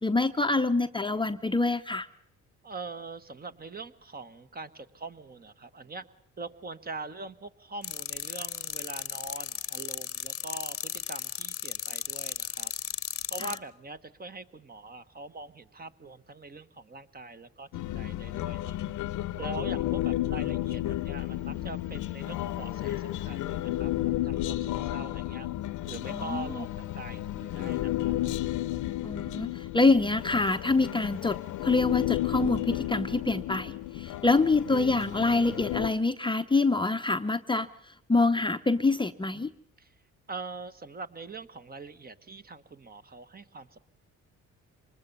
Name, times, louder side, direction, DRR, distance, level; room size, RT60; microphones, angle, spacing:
voice 1, 0.0-2.1 13.4-13.5 26.1-26.7 29.0-39.5, left 3 dB, 15° left, 8 dB, 0.7 m, -26 dB
voice 2, 2.6-6.0 6.4-12.7 13.3-17.7 17.9-18.8 19.4-25.5 25.9-28.1 39.8-39.9 40.3-43.8, right 3 dB, 30° right, 11 dB, 1.2 m, -43 dB
sound 1, 7.8-13.6, left 9 dB, 45° left, 0.8 m, -35 dB
Human voice, 17.7-35.9, left 14 dB, 85° left, 0.8 m, -32 dB
24.5 x 20.5 x 5.4 m, 0.75 s
cardioid pair, 90°, 30 cm